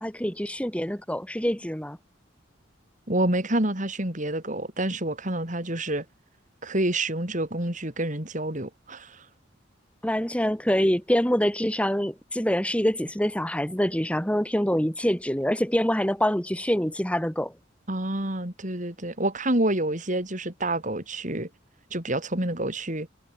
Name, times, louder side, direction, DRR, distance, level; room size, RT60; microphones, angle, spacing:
voice 1, 0.0-2.0 10.0-17.5, equal, 5° left, 3.2 m, -25 dB
voice 2, 3.1-6.0 6.6-9.2 17.9-21.5 21.9-23.1, right 1 dB, 40° right, 4.9 m, -28 dB
head